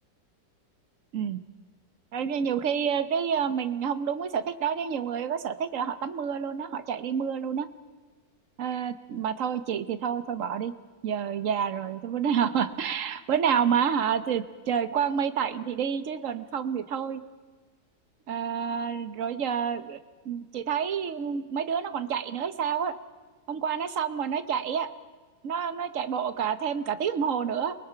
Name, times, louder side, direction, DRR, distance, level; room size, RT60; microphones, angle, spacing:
voice 1, 2.1-7.7 8.6-10.7 11.0-17.2 18.3-20.0 20.2-22.9 23.5-24.9 25.4-27.8, right 7 dB, 55° right, 12 dB, 1.1 m, -28 dB
29.5 x 19.5 x 5.7 m, 1.4 s
omnidirectional pair, 1.9 m